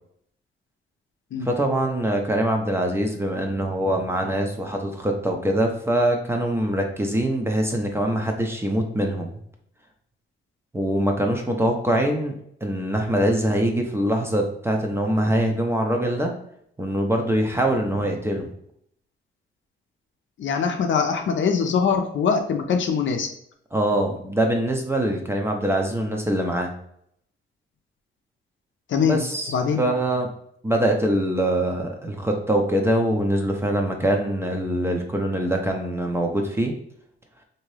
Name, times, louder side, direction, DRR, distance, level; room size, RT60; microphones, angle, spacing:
voice 1, 1.4-9.3 10.7-12.3 12.6-16.3 16.8-18.5 23.7-26.7 29.1-30.3 30.6-36.7, right 1 dB, 10° right, 2 dB, 0.6 m, -23 dB
voice 2, 20.4-23.3 28.9-29.2 29.5-29.8, left 6 dB, 65° left, 5 dB, 0.6 m, -22 dB
3.5 x 2.7 x 3.2 m, 0.70 s
cardioid pair, 115°, 21 cm